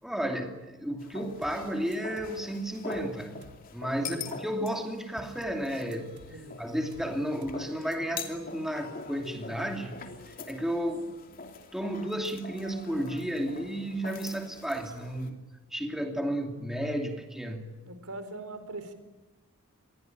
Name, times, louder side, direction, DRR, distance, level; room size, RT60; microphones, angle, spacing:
voice 1, 0.0-3.4 3.7-10.1 10.5-11.1 11.7-15.4 15.7-17.7, equal, ahead, 3 dB, 2.7 m, -33 dB
sound 1, 1.0-15.3, left 4 dB, 40° left, 3.1 m, -44 dB
sound 2, 1.4-1.7 1.9-2.4 2.9-3.2 3.4-3.7 5.4-5.7 5.9-6.4 6.9-7.2 7.4-7.7 7.9-8.0, right 1 dB, 50° right, 2.3 m, -52 dB
voice 2, 4.0-4.3 6.3-6.6 17.9-18.9, right 2 dB, 80° right, 10 dB, 4.3 m, -41 dB
27.0 x 21.5 x 9.3 m, 1.1 s
head